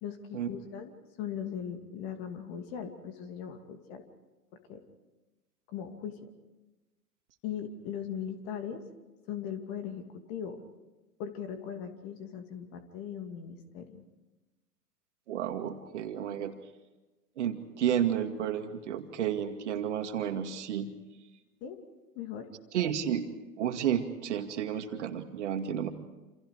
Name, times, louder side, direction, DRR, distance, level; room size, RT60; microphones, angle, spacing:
voice 1, 0.0-4.0 4.7-4.8 5.7-6.3 7.4-8.8 9.3-10.6 11.2-14.0 21.6-21.8 22.1-22.5, left 8 dB, 30° left, 7 dB, 2.5 m, -39 dB
voice 2, 15.3-16.5 17.4-20.9 22.7-23.3 23.6-25.9, right 9 dB, 50° right, 6 dB, 2.3 m, -31 dB
28.5 x 28.0 x 4.9 m, 1.1 s
figure-of-eight pair, 115°, 47 cm